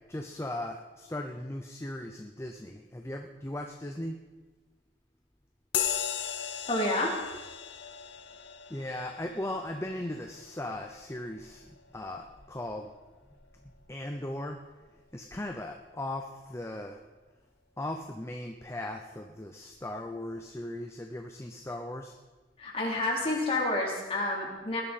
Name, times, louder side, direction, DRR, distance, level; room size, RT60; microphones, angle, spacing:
voice 1, 0.1-4.2 8.7-12.9 13.9-14.6 15.1-17.0 17.8-22.1, left 1 dB, 15° left, 3 dB, 0.6 m, -38 dB
sound 1, 5.7-13.6, left 9 dB, 80° left, 0.9 m, -38 dB
voice 2, 6.7-7.2 22.6-24.8, left 1 dB, 30° left, -3 dB, 3.3 m, -29 dB
19.5 x 11.5 x 4.2 m, 1.2 s
head